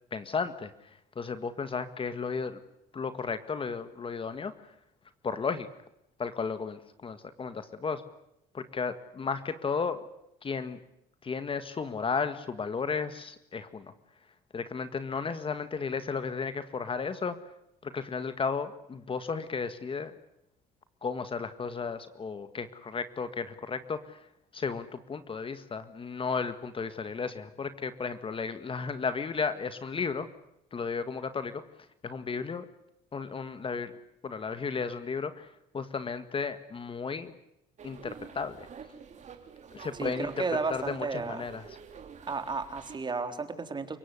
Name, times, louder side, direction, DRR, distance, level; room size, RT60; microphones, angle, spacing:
voice 1, 0.1-2.6 2.9-4.7 5.2-5.7 6.2-8.0 8.5-10.0 10.4-10.8 11.2-13.9 14.5-17.4 17.8-20.1 21.0-24.3 24.5-30.3 30.7-31.6 32.0-32.7 33.1-33.9 34.2-37.3 37.8-38.7 39.7-40.3 40.7-41.8, left 5 dB, 30° left, 11 dB, 1.8 m, -34 dB
sound 1, 37.8-43.0, right 6 dB, 45° right, 3.8 m, -48 dB
voice 2, 40.0-41.5 42.3-44.0, right 4 dB, 25° right, 7 dB, 3.9 m, -33 dB
30.0 x 18.0 x 9.8 m, 0.80 s
cardioid pair, 110°, 17 cm